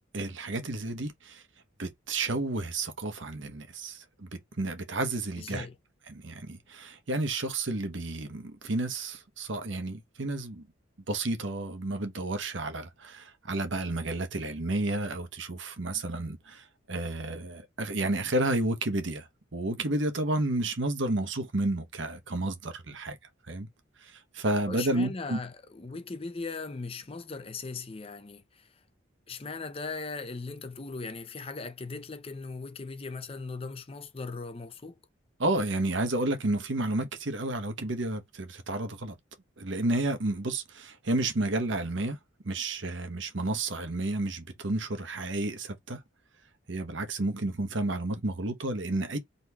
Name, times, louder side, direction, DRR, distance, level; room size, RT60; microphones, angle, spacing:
voice 1, 0.1-1.4 1.8-5.7 6.1-10.7 11.1-23.2 23.5-23.7 24.0-25.4 35.4-39.2 39.6-42.2 42.4-46.0 46.7-49.2, right 2 dB, 70° right, 1.1 m, -31 dB
voice 2, 5.4-5.7 24.7-28.4 29.3-35.0, left 3 dB, 30° left, 0.5 m, -38 dB
4.1 x 3.0 x 3.4 m
head